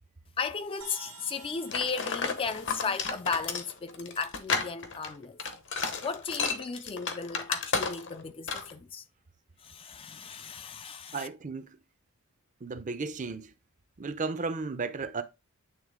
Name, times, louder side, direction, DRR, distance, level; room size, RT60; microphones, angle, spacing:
voice 1, 0.4-5.4 6.0-9.0 9.6-11.3, left 5 dB, 25° left, 0.3 m, -35 dB
sound 1, 0.8-4.6, right 6 dB, 80° right, 1.3 m, -53 dB
sound 2, 1.7-8.2 8.5-8.7, left 5 dB, 55° left, 1.0 m, -32 dB
voice 2, 11.1-11.7 12.6-13.5 14.0-15.2, right 4 dB, 35° right, 0.5 m, -34 dB
8.8 x 3.4 x 3.7 m
head